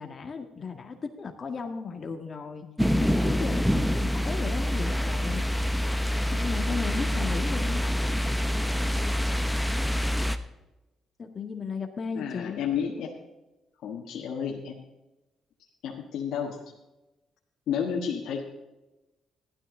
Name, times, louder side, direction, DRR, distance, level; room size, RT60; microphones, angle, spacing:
voice 1, 0.0-2.7 2.9-5.5 6.3-7.8 11.2-12.6, left 5 dB, 40° left, 4 dB, 1.8 m, -35 dB
sound 1, 2.8-10.4, equal, ahead, 0.8 m, -26 dB
voice 2, 12.1-13.1 13.8-14.8 15.8-16.6 17.7-18.4, left 7 dB, 80° left, -2 dB, 1.5 m, -31 dB
15.0 x 12.0 x 3.8 m, 1.0 s
cardioid pair, 90°, 0 cm